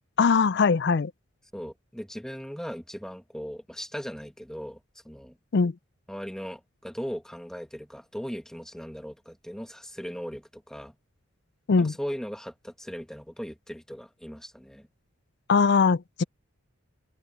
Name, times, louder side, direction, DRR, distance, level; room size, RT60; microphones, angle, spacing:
voice 1, 0.2-1.1 5.5-5.7 11.7-11.9 15.5-16.2, left 5 dB, 55° left, 0.4 m, -21 dB
voice 2, 1.5-4.8 5.1-5.4 6.1-10.9 11.8-14.9, equal, 5° left, 1.8 m, -38 dB
open air
head